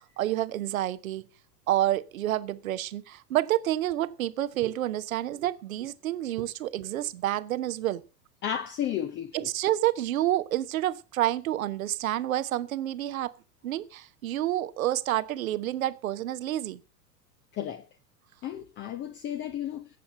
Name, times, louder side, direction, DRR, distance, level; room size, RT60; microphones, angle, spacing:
voice 1, 0.2-1.3 1.7-8.0 9.3-13.3 13.6-16.8, right 13 dB, 55° right, 1.1 m, -29 dB
voice 2, 8.4-9.5 17.5-17.8 18.4-19.9, left 10 dB, 25° left, 0.8 m, -33 dB
16.5 x 7.1 x 6.4 m
figure-of-eight pair, 90°, 48 cm